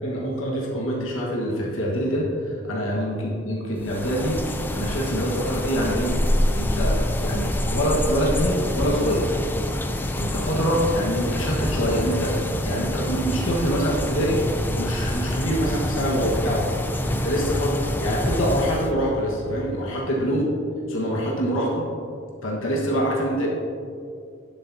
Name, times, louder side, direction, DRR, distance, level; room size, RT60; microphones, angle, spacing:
voice 1, 0.0-4.4 4.7-6.1 6.5-9.4 10.1-14.4 14.7-16.7 17.1-20.4 20.9-21.8 22.4-23.5, equal, 90° left, -3 dB, 1.5 m, -25 dB
sound 1, 3.8-18.9, left 1 dB, 10° left, 0.3 m, -26 dB
12.0 x 7.8 x 2.8 m, 2.4 s
head